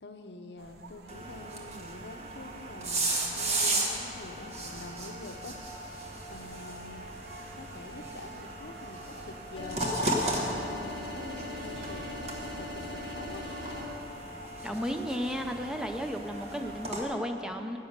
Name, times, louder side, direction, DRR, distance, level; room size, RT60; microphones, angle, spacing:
voice 1, 0.0-5.6 6.3-7.1 7.5-13.4, left 2 dB, 70° left, 7 dB, 0.7 m, -46 dB
sound 1, 0.6-17.2, right 3 dB, 60° right, 0.7 m, -52 dB
sound 2, 1.1-17.0, right 2 dB, 35° right, 1.2 m, -36 dB
sound 3, 9.6-13.8, left 1 dB, 30° left, 3.1 m, -40 dB
voice 2, 14.6-17.8, equal, 5° right, 5 dB, 0.5 m, -33 dB
10.5 x 8.9 x 6.6 m, 2.9 s
head